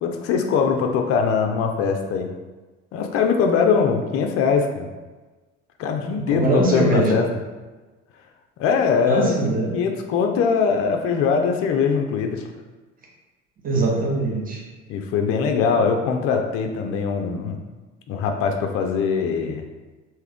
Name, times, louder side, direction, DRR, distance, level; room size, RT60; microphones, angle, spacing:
voice 1, 0.0-2.3 2.9-4.9 5.8-7.3 8.6-9.3 9.7-12.5 14.9-17.6 18.1-19.6, left 6 dB, 40° left, 4 dB, 0.5 m, -21 dB
voice 2, 6.1-7.1 9.1-9.8 13.6-14.6 15.8-15.9, right 2 dB, 20° right, -2 dB, 1.0 m, -22 dB
3.4 x 2.8 x 3.5 m, 1.2 s
figure-of-eight pair, 55°, 38 cm